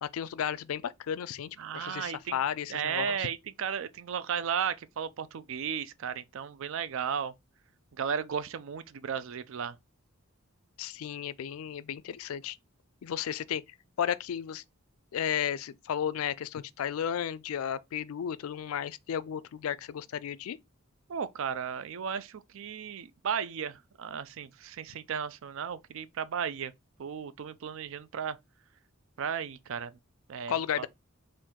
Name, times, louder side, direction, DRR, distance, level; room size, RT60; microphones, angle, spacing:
voice 1, 0.0-3.3 10.8-12.6 13.0-13.6 14.0-14.6 15.1-20.6 30.5-30.9, left 9 dB, 80° left, 0.3 m, -33 dB
voice 2, 1.6-2.4 2.7-7.3 7.9-9.8 21.1-26.7 27.0-28.4 29.2-30.0 30.3-30.9, right 7 dB, 65° right, 0.4 m, -35 dB
4.4 x 2.5 x 3.6 m
head